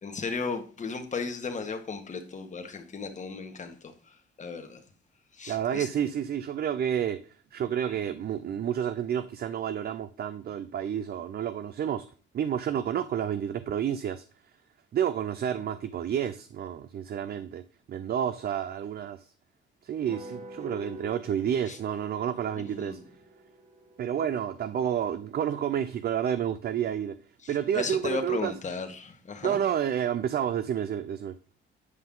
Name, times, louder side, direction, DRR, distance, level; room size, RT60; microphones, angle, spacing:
voice 1, 0.0-4.8 5.3-5.9 7.8-7.9 21.7-21.8 22.6-23.0 27.4-29.6, left 4 dB, 40° left, 1.6 m, -35 dB
voice 2, 5.5-12.1 12.3-14.2 14.9-19.3 19.8-23.0 24.0-27.2 27.5-28.5 29.4-31.4, right 9 dB, 50° right, 0.5 m, -30 dB
sound 1, 20.1-24.8, equal, 35° right, 1.3 m, -46 dB
9.5 x 5.5 x 3.8 m
cardioid pair, 90°, 20 cm